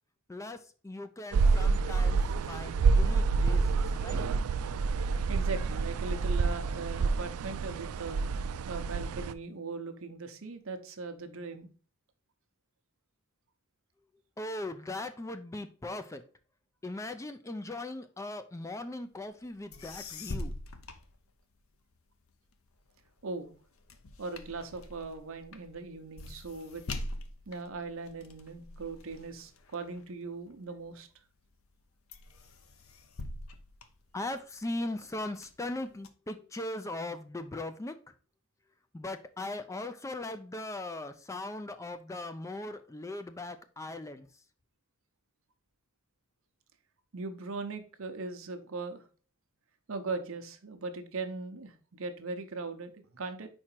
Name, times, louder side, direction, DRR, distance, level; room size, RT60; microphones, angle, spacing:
voice 1, 0.3-2.2 2.5-4.2 14.4-16.2 16.8-20.6 34.1-38.1 38.9-44.3, left 2 dB, 15° left, 9 dB, 0.4 m, -39 dB
sound 1, 1.3-9.3, right 4 dB, 85° right, 0.4 m, -28 dB
voice 2, 5.3-8.2 8.7-11.7 23.2-23.5 24.2-26.8 27.5-31.1 47.1-49.1 49.9-53.5, right 3 dB, 65° right, 7 dB, 0.9 m, -39 dB
sound 2, 19.4-19.5 19.7-21.8 22.3-30.9 31.4-31.8 32.1-34.6 35.1-36.1, left 2 dB, 70° left, 0.7 m, -44 dB
4.9 x 4.4 x 4.4 m, 0.39 s
head